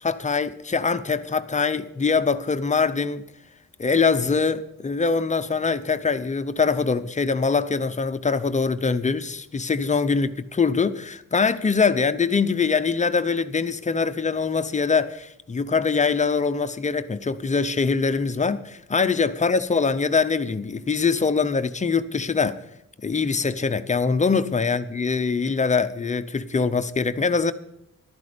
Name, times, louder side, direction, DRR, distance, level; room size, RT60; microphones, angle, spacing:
voice 1, 0.0-3.2 3.8-22.6 23.0-27.5, left 5 dB, 25° left, 0.7 m, -23 dB
13.5 x 12.5 x 5.1 m
wide cardioid pair, 175°, 31 cm